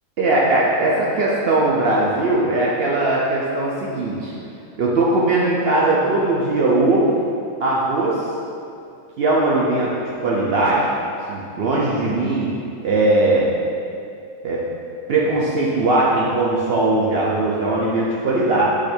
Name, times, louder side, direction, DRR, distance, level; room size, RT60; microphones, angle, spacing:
voice 1, 0.2-4.3 4.8-7.1 7.6-8.3 9.2-9.9 10.2-10.9 11.3-12.5 12.8-13.5 14.4-14.6 15.1-18.6, right 2 dB, 70° right, -5 dB, 0.6 m, -19 dB
4.8 x 2.5 x 4.2 m, 2.5 s
omnidirectional pair, 1.5 m